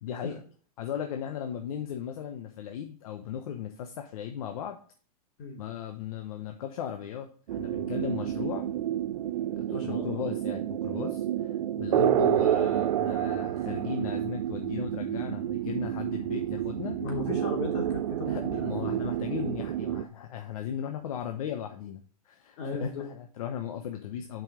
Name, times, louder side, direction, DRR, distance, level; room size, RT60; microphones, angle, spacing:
voice 1, 0.0-0.4 0.8-4.8 5.6-8.7 9.6-17.0 18.2-24.4, left 9 dB, 70° left, 5 dB, 1.0 m, -37 dB
sound 1, 7.5-20.0, right 12 dB, 80° right, 0.5 m, -29 dB
voice 2, 9.7-10.3 11.9-12.2 16.9-19.0 22.6-23.1, left 3 dB, 50° left, 1 dB, 3.0 m, -36 dB
7.5 x 5.4 x 5.1 m, 0.43 s
supercardioid pair, 145°, 19 cm